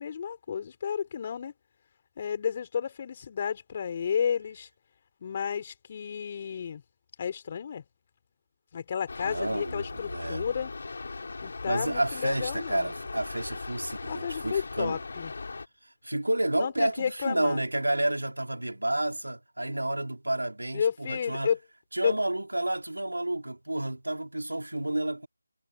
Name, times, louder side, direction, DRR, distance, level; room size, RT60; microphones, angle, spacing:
voice 1, 0.0-1.5 2.2-4.7 5.2-6.8 7.2-7.8 8.7-10.7 11.4-12.9 14.1-15.3 16.6-17.6 20.7-21.6 22.0-22.1, left 7 dB, 30° left, 5.0 m, -31 dB
sound 1, 9.1-15.7, left 3 dB, 50° left, 7.2 m, -39 dB
voice 2, 9.2-10.4 11.7-15.0 15.8-21.5 21.9-25.3, right 1 dB, 80° right, 3.7 m, -30 dB
figure-of-eight pair, 160°, 0 cm